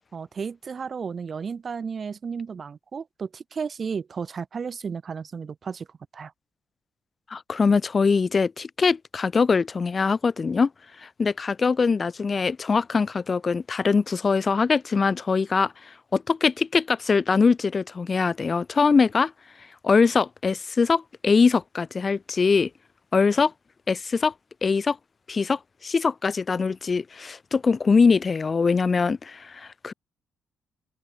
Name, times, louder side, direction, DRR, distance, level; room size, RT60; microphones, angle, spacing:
voice 1, 0.1-5.9 6.1-6.3, right 6 dB, 35° right, 1.5 m, -33 dB
voice 2, 7.3-10.7 11.0-15.7 16.1-19.3 19.8-22.7 23.1-23.5 23.9-24.3 24.6-25.0 25.3-29.9, left 5 dB, 25° left, 0.5 m, -22 dB
open air
cardioid pair, 140°, 0 cm